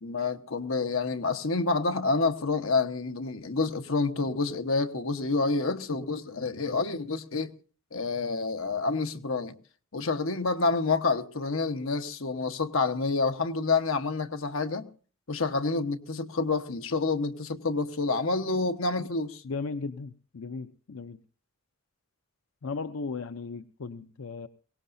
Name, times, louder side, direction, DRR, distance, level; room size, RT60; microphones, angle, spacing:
voice 1, 0.0-7.5 7.9-9.5 9.9-14.9 15.3-19.4, left 3 dB, 70° left, 1.2 m, -28 dB
voice 2, 19.4-21.2 22.6-24.5, left 4 dB, 85° left, 0.6 m, -36 dB
23.0 x 18.0 x 2.7 m
head